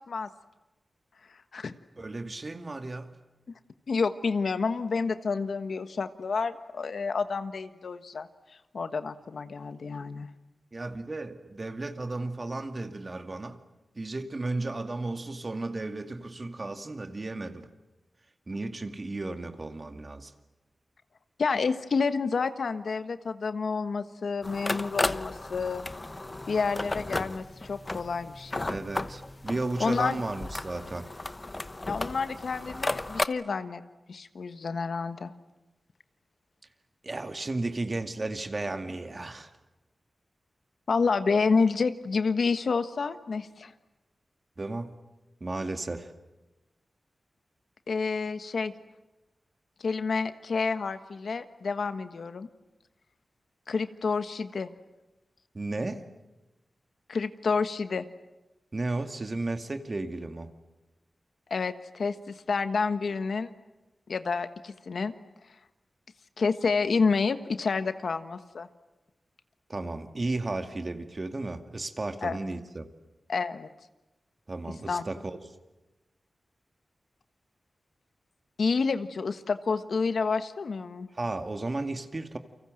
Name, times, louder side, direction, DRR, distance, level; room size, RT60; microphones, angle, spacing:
voice 1, 2.0-3.2 10.7-13.6 14.0-17.7 18.5-20.3 28.7-31.1 37.0-39.5 44.6-44.9 45.4-46.1 55.5-56.0 58.7-60.5 69.7-72.9 74.5-75.4 81.2-82.4, right 2 dB, 40° right, 6 dB, 2.3 m, -34 dB
voice 2, 3.9-8.3 8.7-10.3 21.4-25.9 26.5-28.8 29.8-30.2 31.9-33.8 34.1-35.3 40.9-43.7 47.9-48.7 49.8-52.5 53.7-54.7 57.1-58.0 61.5-63.5 64.1-65.1 66.4-68.7 72.2-72.4 73.3-73.7 74.9-75.0 78.6-81.1, left 4 dB, 75° left, 10 dB, 1.4 m, -29 dB
sound 1, 24.4-33.3, left 2 dB, 30° left, 0.9 m, -34 dB
29.5 x 24.5 x 7.8 m, 1.1 s
cardioid pair, 55°, 0 cm